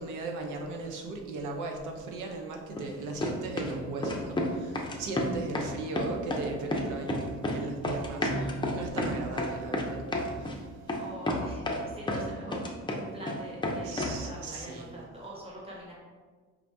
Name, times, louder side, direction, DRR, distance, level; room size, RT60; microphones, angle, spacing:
voice 1, 0.0-10.0 10.4-11.0 13.8-14.9, right 3 dB, 85° right, 2 dB, 0.7 m, -37 dB
sound 1, 2.8-2.9 3.2-3.8 4.0-4.5 4.8-5.7 6.0-6.5 6.7-7.6 7.8-10.6 10.9-11.0 11.3-12.2 12.5-13.4 13.6-14.2, left 1 dB, 15° left, 0.6 m, -30 dB
voice 2, 11.0-12.6 13.1-15.9, right 1 dB, 20° right, -4 dB, 1.3 m, -44 dB
4.7 x 2.5 x 3.4 m, 1.5 s
cardioid pair, 90°, 30 cm